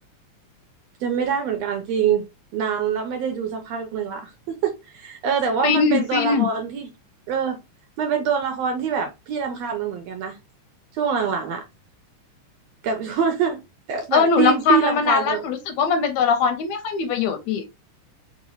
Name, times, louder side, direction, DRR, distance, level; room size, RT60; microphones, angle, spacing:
voice 1, 1.0-2.2 2.5-6.9 7.3-7.6 8.0-10.4 10.9-11.6 12.8-13.6 13.9-15.4, right 7 dB, 75° right, 1.6 m, -24 dB
voice 2, 5.6-6.5 14.1-17.6, left 5 dB, 80° left, 1.8 m, -21 dB
4.7 x 2.9 x 2.9 m
omnidirectional pair, 3.5 m